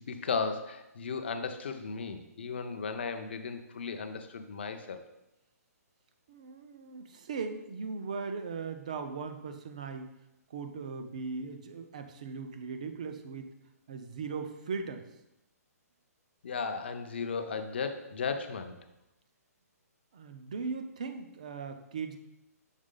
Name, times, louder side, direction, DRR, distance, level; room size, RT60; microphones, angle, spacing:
voice 1, 0.0-5.0 16.4-18.7, left 5 dB, 40° left, 7 dB, 0.5 m, -35 dB
voice 2, 6.3-10.1 10.5-13.5 13.9-15.0 20.1-22.2, right 5 dB, 25° right, 8 dB, 0.3 m, -38 dB
6.4 x 4.0 x 3.7 m, 0.88 s
hypercardioid pair, 180°, 9 cm